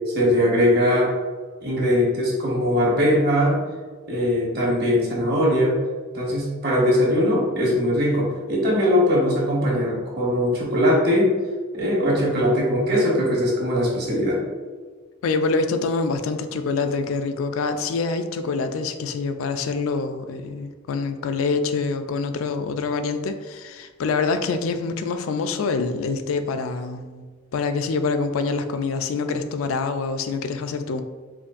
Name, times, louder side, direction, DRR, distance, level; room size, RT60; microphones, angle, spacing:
voice 1, 0.1-1.1 1.6-3.6 4.1-5.8 6.1-11.3 11.7-14.4, equal, 50° right, -3 dB, 1.1 m, -20 dB
voice 2, 15.2-27.3 27.5-31.0, left 4 dB, 85° left, 8 dB, 0.3 m, -25 dB
5.1 x 2.6 x 2.5 m, 1.4 s
head